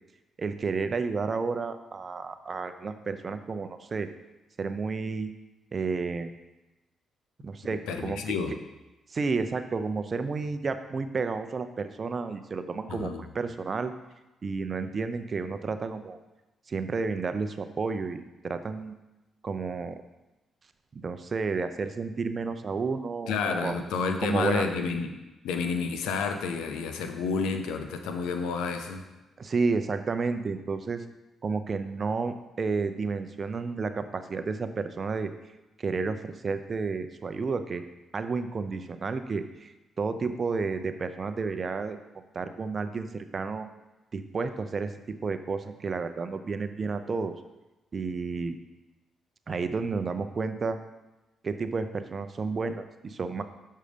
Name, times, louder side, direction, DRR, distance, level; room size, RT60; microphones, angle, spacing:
voice 1, 0.4-4.1 4.6-5.3 5.7-6.3 7.4-8.3 9.1-13.9 14.4-16.2 16.7-18.9 19.4-20.0 20.9-23.8 24.2-24.6 29.4-31.0 31.4-35.3 35.8-37.9 38.1-42.0 42.3-43.7 44.1-47.3 47.9-48.5 49.5-50.8 51.4-53.4, right 4 dB, 45° right, 9 dB, 0.6 m, -31 dB
voice 2, 7.9-8.5 12.9-13.2 23.3-25.1 25.4-29.1, left 5 dB, 85° left, 6 dB, 0.7 m, -30 dB
6.4 x 5.5 x 5.1 m, 1.0 s
supercardioid pair, 55°, 0 cm